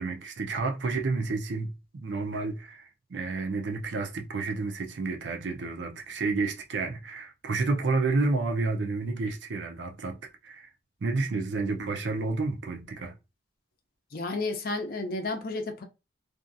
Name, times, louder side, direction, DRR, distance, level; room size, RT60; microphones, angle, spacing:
voice 1, 0.0-10.7 11.0-13.2, right 3 dB, 75° right, 0.5 m, -30 dB
voice 2, 14.1-15.8, left 2 dB, 50° left, 0.5 m, -32 dB
2.5 x 2.4 x 2.6 m
head